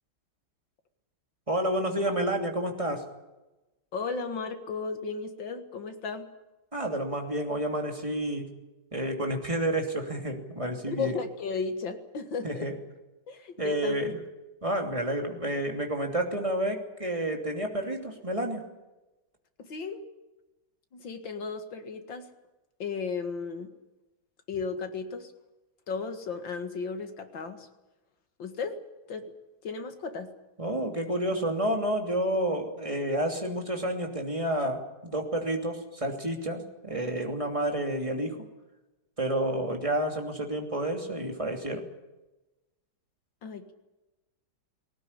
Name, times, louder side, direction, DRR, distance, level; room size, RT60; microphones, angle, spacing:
voice 1, 1.5-3.0 6.7-8.5 8.9-11.1 12.4-12.8 13.6-14.2 14.6-18.6 30.6-38.5 39.2-41.9, right 1 dB, 15° right, 3 dB, 2.9 m, -30 dB
voice 2, 3.9-6.3 10.9-12.7 13.3-14.0 19.6-20.0 20.9-22.3 22.8-23.7 24.5-25.3 25.9-27.7 28.4-28.8 29.1-29.3 29.6-30.3 43.4-43.7, left 5 dB, 65° left, 7 dB, 2.7 m, -35 dB
19.5 x 18.5 x 9.9 m, 1.0 s
omnidirectional pair, 2.2 m